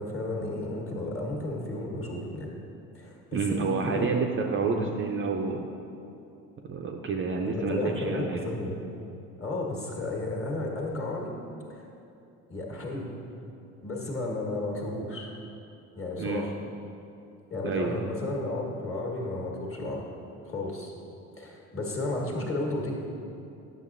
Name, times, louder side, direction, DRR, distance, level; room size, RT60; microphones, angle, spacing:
voice 1, 0.0-2.5 2.9-4.9 7.4-8.8 9.4-11.3 11.7-11.9 12.5-13.2 13.8-15.3 15.9-16.5 17.5-20.1 20.4-20.9 21.4-22.9, left 2 dB, 30° left, -1 dB, 1.5 m, -33 dB
voice 2, 3.3-5.7 6.7-8.4 16.2-16.4 17.6-18.1, right 4 dB, 30° right, 2 dB, 0.5 m, -29 dB
9.0 x 6.2 x 2.5 m, 2.8 s
hypercardioid pair, 60°, 42 cm